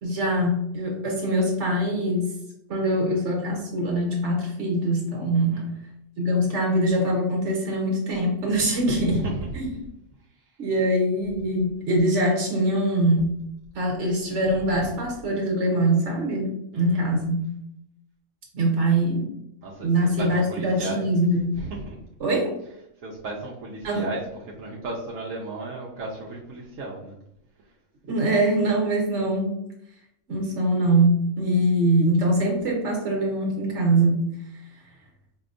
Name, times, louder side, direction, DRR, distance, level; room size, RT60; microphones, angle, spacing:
voice 1, 0.0-2.3 2.7-5.6 6.2-9.2 9.5-9.7 10.6-13.3 13.7-17.4 18.5-19.3 19.8-21.4 22.2-22.5 23.8-24.0 28.1-29.5 30.3-34.2, right 1 dB, 65° right, 0 dB, 1.4 m, -23 dB
voice 2, 5.3-5.7 9.0-9.5 10.3-10.4 16.7-17.0 19.6-21.1 21.5-22.0 23.0-27.1, right 2 dB, 85° right, -4 dB, 1.1 m, -34 dB
4.6 x 2.8 x 2.5 m, 0.78 s
omnidirectional pair, 1.3 m